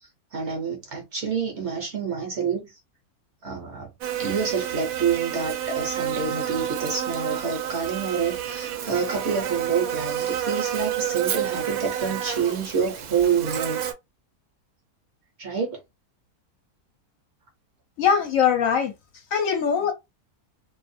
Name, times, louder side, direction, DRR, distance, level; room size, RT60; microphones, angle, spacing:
voice 1, 0.0-2.8 3.4-3.9 4.2-13.8 15.4-15.8, right 6 dB, 55° right, 0.9 m, -28 dB
Buzz, 4.0-13.9, right 10 dB, 75° right, 1.0 m, -29 dB
voice 2, 18.0-18.9 19.3-19.9, left 7 dB, 70° left, 1.0 m, -21 dB
2.7 x 2.3 x 2.5 m
omnidirectional pair, 1.6 m